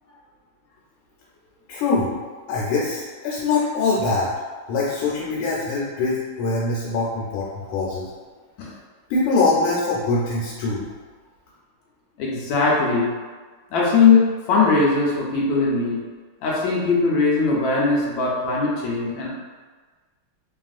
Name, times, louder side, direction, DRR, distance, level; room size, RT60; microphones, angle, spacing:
voice 1, 1.7-2.2 2.5-4.3 4.7-8.1 9.1-10.8, left 3 dB, 90° left, -5 dB, 1.5 m, -23 dB
voice 2, 12.2-13.1 13.7-16.0 16.4-19.3, left 4 dB, 75° left, -4 dB, 1.2 m, -20 dB
3.4 x 2.4 x 2.4 m, 1.4 s
omnidirectional pair, 2.4 m